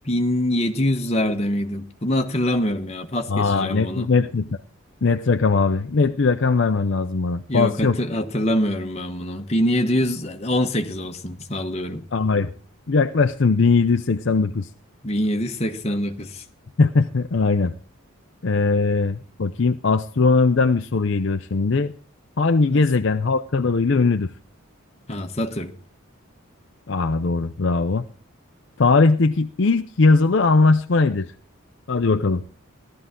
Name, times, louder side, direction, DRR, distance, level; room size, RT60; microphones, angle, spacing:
voice 1, 0.0-4.1 7.5-12.0 15.0-16.4 22.6-22.8 25.1-25.7, left 1 dB, 30° left, 1.2 m, -24 dB
voice 2, 3.3-4.6 5.0-8.0 12.1-12.5 12.9-14.7 16.8-17.7 18.4-21.9 22.4-24.3 26.9-28.1 28.8-31.3 31.9-32.4, left 4 dB, 55° left, 0.5 m, -20 dB
15.5 x 12.5 x 3.7 m
head